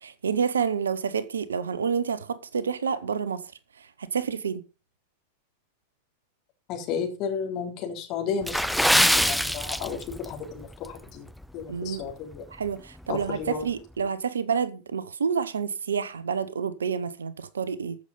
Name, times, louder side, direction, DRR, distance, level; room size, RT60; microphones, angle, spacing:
voice 1, 0.0-3.5 3.8-4.6 11.7-12.0 12.5-18.0, right 6 dB, 70° right, 0.9 m, -29 dB
voice 2, 6.7-11.3 11.5-12.4 13.1-13.6, left 6 dB, 40° left, 3.6 m, -33 dB
Water / Splash splatter, 8.4-10.3 10.6-10.9 11.4-11.6 12.1-12.2, equal, ahead, 0.5 m, -23 dB
15.0 x 6.7 x 5.3 m
figure-of-eight pair, 90°, 0 cm